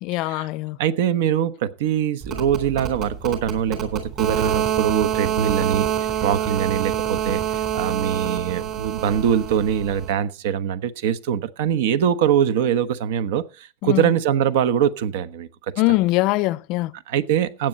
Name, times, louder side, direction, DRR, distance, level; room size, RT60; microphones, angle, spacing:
voice 1, 0.0-0.8 13.8-14.1 15.8-16.9, left 20 dB, 45° left, 0.5 m, -22 dB
voice 2, 0.8-5.9 6.2-7.4 7.7-15.5 17.1-17.7, right 9 dB, 70° right, 1.1 m, -23 dB
sound 1, 2.2-10.1, right 10 dB, 35° right, 3.8 m, -26 dB
15.5 x 8.9 x 4.2 m
supercardioid pair, 160°, 0 cm